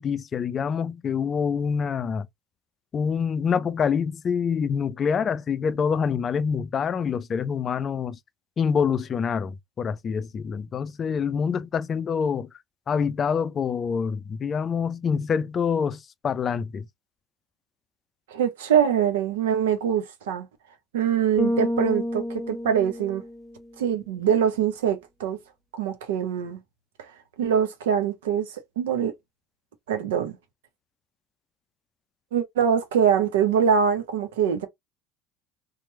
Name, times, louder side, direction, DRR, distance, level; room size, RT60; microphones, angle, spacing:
voice 1, 0.0-2.3 2.9-8.2 8.6-12.5 12.9-16.8, left 6 dB, 40° left, 0.4 m, -26 dB
voice 2, 18.3-20.5 20.9-23.2 23.8-25.4 25.7-26.6 27.4-29.1 29.9-30.4 32.3-34.7, right 8 dB, 80° right, 0.6 m, -23 dB
Bass guitar, 21.4-23.7, equal, 10° right, 0.6 m, -29 dB
3.0 x 2.1 x 3.0 m
hypercardioid pair, 70°, 0 cm